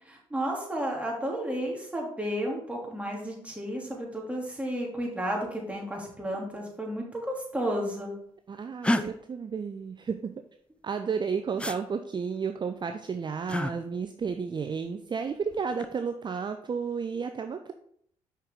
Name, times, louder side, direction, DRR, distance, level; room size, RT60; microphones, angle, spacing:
voice 1, 0.1-8.2 8.9-9.0, equal, 10° right, -1 dB, 2.7 m, -32 dB
voice 2, 8.5-10.3 10.8-17.7, right 6 dB, 35° right, 7 dB, 0.6 m, -32 dB
sound 1, 8.8-9.0 11.6-11.8 13.5-13.7 15.5-15.9, left 1 dB, 10° left, 0.5 m, -28 dB
6.1 x 5.5 x 3.7 m, 0.68 s
hypercardioid pair, 50°, 12 cm